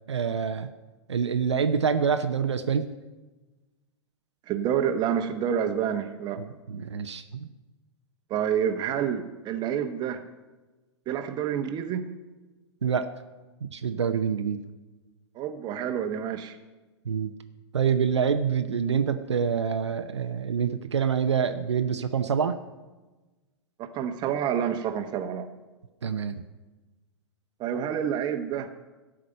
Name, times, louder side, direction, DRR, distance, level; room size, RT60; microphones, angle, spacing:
voice 1, 0.1-0.7 1.1-2.9 6.7-7.5 12.8-13.1 13.7-14.6 17.1-17.3 17.7-22.6 26.0-26.4, right 7 dB, 80° right, 8 dB, 0.7 m, -26 dB
voice 2, 4.5-6.4 8.3-10.2 11.1-12.1 15.3-16.6 23.8-25.5 27.6-28.7, right 8 dB, 30° right, 7 dB, 1.1 m, -28 dB
13.0 x 5.0 x 7.8 m, 1.2 s
figure-of-eight pair, 105°, 15 cm